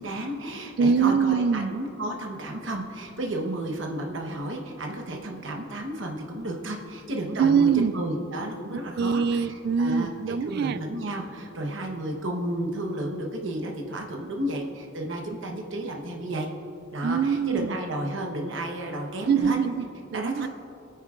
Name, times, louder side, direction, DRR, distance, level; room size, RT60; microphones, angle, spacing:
voice 1, 0.0-9.5 9.8-10.1 10.4-16.5 16.9-19.6 20.1-20.5, right 1 dB, 70° right, 1 dB, 1.1 m, -32 dB
voice 2, 0.8-1.7 7.4-7.9 8.7-10.8 17.0-17.8 19.3-20.5, right 6 dB, 55° right, 15 dB, 0.3 m, -23 dB
22.5 x 9.1 x 2.5 m, 2.8 s
head